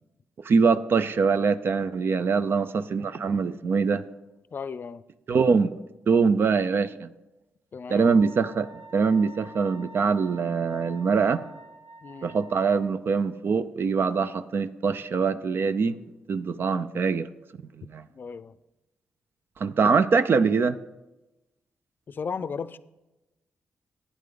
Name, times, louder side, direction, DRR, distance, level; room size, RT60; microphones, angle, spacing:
voice 1, 0.4-4.0 5.3-5.7 6.1-7.1 7.9-11.4 12.2-16.0 16.3-17.3 17.8-18.0 19.6-20.8, right 5 dB, 55° right, 12 dB, 0.5 m, -23 dB
voice 2, 4.5-5.0 7.7-8.1 12.0-12.3 18.1-18.6 19.8-19.9 22.1-22.8, left 5 dB, 50° left, 16 dB, 0.5 m, -35 dB
Wind instrument woodwind instrument, 8.0-12.9, right 2 dB, 85° right, 1.3 m, -48 dB
11.0 x 9.5 x 3.8 m, 0.99 s
cardioid pair, 80°, 4 cm